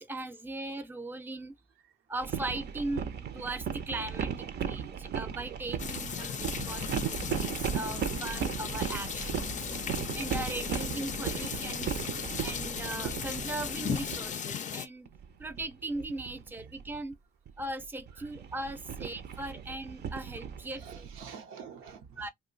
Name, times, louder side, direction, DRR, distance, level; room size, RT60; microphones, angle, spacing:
voice 1, 0.0-1.5 2.1-3.1 3.3-12.0 12.4-15.1 15.4-17.1 17.6-21.1 22.2-22.3, right 2 dB, 10° right, 0.6 m, -39 dB
sound 1, 2.2-14.3 15.1-17.1 17.5-21.2, right 7 dB, 55° right, 0.6 m, -37 dB
sound 2, 5.8-14.9, left 7 dB, 40° left, 0.4 m, -37 dB
voice 2, 20.7-22.3, right 6 dB, 85° right, 0.8 m, -48 dB
2.6 x 2.2 x 3.8 m
cardioid pair, 90°, 20 cm